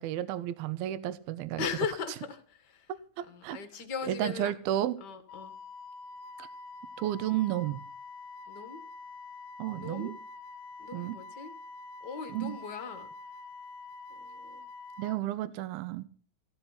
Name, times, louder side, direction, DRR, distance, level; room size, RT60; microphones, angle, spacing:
voice 1, 0.0-1.7 3.2-3.6 4.1-5.0 6.4-6.5 7.0-7.8 9.6-10.2 10.9-11.2 12.3-12.6 15.0-16.0, right 13 dB, 80° right, 2.8 m, -32 dB
voice 2, 1.6-2.9 3.3-4.5 5.0-5.5 8.5-8.8 9.7-10.1 10.8-11.5 12.0-13.1 14.1-14.6, left 6 dB, 45° left, 1.4 m, -38 dB
Wind instrument woodwind instrument, 5.3-15.2, left 3 dB, 75° left, 2.3 m, -46 dB
15.5 x 12.5 x 5.8 m
omnidirectional pair, 4.4 m